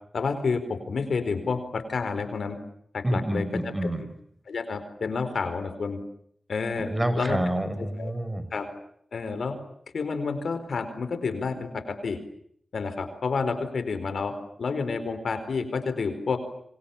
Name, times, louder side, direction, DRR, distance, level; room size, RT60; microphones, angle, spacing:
voice 1, 0.1-2.6 2.9-3.5 3.8-3.9 4.5-6.0 6.5-7.4 7.8-8.1 8.5-8.7 9.1-9.6 9.9-12.2 12.7-16.4, left 4 dB, 80° left, 10 dB, 4.4 m, -29 dB
voice 2, 3.0-4.0 6.9-8.5, right 1 dB, 20° right, 12 dB, 5.2 m, -28 dB
29.0 x 25.5 x 7.3 m, 0.68 s
cardioid pair, 60°, 0 cm